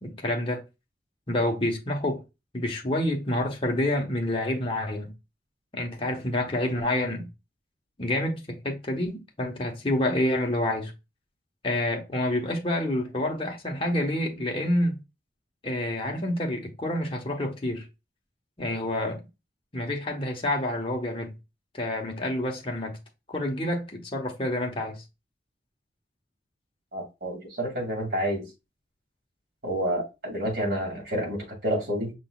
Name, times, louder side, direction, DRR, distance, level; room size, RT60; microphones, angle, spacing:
voice 1, 0.0-0.6 1.3-2.2 2.5-5.1 5.7-7.3 8.0-10.9 11.6-15.0 15.6-17.9 18.6-19.2 19.7-21.3 21.7-23.0 23.3-25.0, left 1 dB, 30° left, 1.1 m, -28 dB
voice 2, 26.9-28.5 29.6-32.1, equal, 60° right, 2.3 m, -29 dB
5.9 x 3.8 x 2.3 m
head